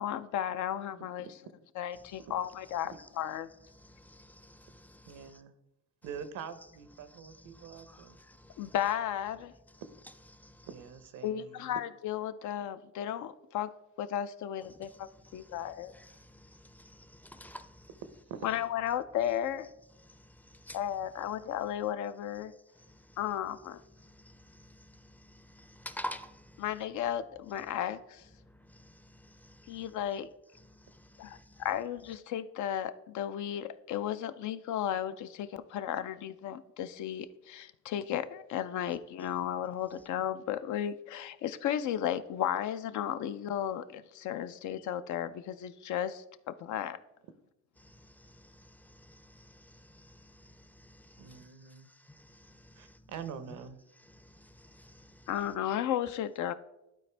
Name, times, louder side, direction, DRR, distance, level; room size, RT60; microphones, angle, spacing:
voice 1, 0.0-1.3 1.8-3.5 8.6-9.5 11.2-13.7 14.0-15.9 18.4-19.7 20.7-22.5 23.2-23.8 26.6-28.2 29.7-30.3 31.2-47.0 55.3-56.5, left 10 dB, 75° left, 0.5 m, -34 dB
voice 2, 1.0-1.3 5.0-5.5 6.0-8.2 10.6-11.8 18.3-18.5 51.2-51.9 52.7-53.8, right 7 dB, 85° right, 0.7 m, -45 dB
voice 3, 3.7-5.4 7.2-8.7 10.3-10.7 14.8-15.0 15.2-17.9 20.0-20.8 22.8-23.2 24.0-26.6 28.4-29.9 30.6-31.6 47.8-53.0 54.2-55.3, equal, 5° left, 0.4 m, -51 dB
11.5 x 4.2 x 3.3 m
cardioid pair, 90°, 30 cm